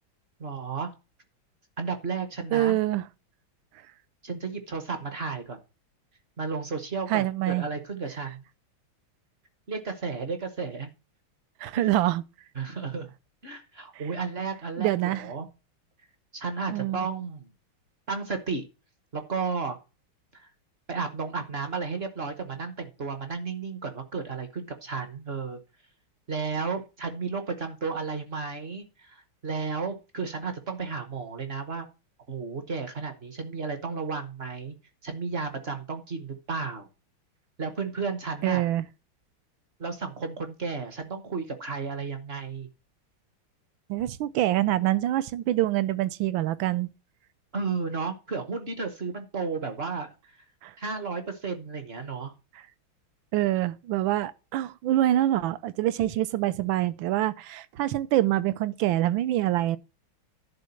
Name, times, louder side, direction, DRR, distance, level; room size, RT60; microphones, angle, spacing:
voice 1, 0.4-0.9 1.8-2.7 4.2-5.6 6.4-8.4 9.7-10.9 11.7-11.9 12.6-13.1 13.4-15.5 16.3-17.5 18.1-18.6 19.1-19.8 20.3-20.5 20.9-25.6 26.3-31.9 32.3-34.7 35.0-36.9 37.6-38.7 39.8-42.7 47.5-50.4 50.8-52.4, right 4 dB, 45° right, 0.8 m, -33 dB
voice 2, 2.5-3.1 7.1-7.7 11.6-12.2 14.8-15.3 16.7-17.1 38.4-38.8 43.9-46.9 50.6-50.7 53.3-59.8, right 14 dB, 75° right, 1.3 m, -25 dB
10.5 x 3.8 x 7.0 m
omnidirectional pair, 2.3 m